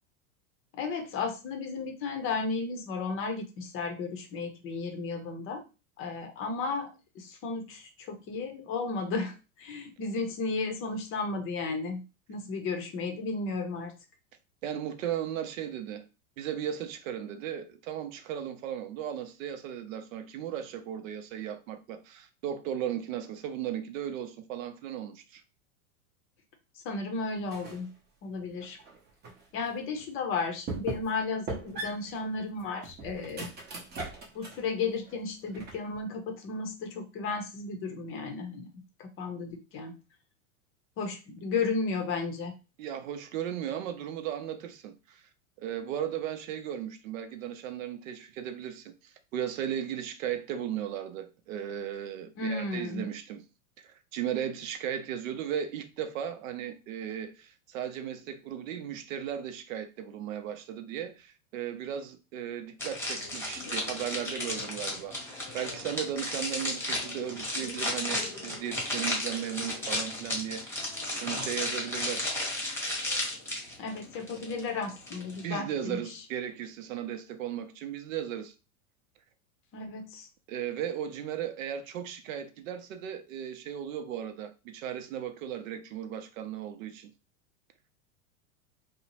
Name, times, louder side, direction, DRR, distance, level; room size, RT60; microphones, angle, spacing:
voice 1, 0.7-5.6 6.0-12.0 12.3-13.9 26.8-27.9 28.2-28.8 29.5-33.5 34.3-38.7 39.0-39.9 41.0-42.5 52.4-53.1 73.8-76.2 79.7-80.3, left 4 dB, 30° left, 0.6 m, -34 dB
voice 2, 14.6-16.1 16.4-25.4 42.8-45.2 45.6-53.4 53.8-70.9 71.2-72.3 75.4-78.5 80.5-87.1, right 9 dB, 70° right, 0.6 m, -36 dB
sound 1, 27.5-27.9 28.4-29.4 30.0-30.1 30.7-31.2 31.5-34.7 35.1-36.0, right 3 dB, 25° right, 0.7 m, -40 dB
sound 2, 62.8-75.4, left 1 dB, 5° left, 0.9 m, -34 dB
2.6 x 2.1 x 2.9 m
hypercardioid pair, 120°, 42 cm